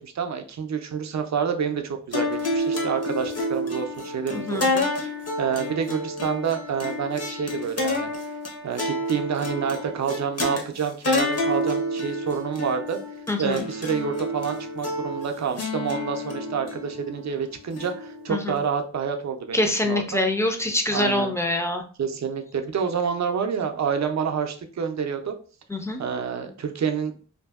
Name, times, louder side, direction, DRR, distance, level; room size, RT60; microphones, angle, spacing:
voice 1, 0.0-8.1 8.6-13.0 13.4-20.2 20.9-21.3 22.0-25.3 26.0-27.1, right 7 dB, 60° right, 6 dB, 0.5 m, -28 dB
sound 1, 2.1-18.6, left 1 dB, 50° left, 0.7 m, -29 dB
voice 2, 4.3-4.7 13.3-13.6 18.3-18.6 19.5-21.8 25.7-26.0, left 2 dB, 10° left, 4 dB, 0.4 m, -25 dB
2.6 x 2.6 x 2.3 m, 0.41 s
wide cardioid pair, 80°, 31 cm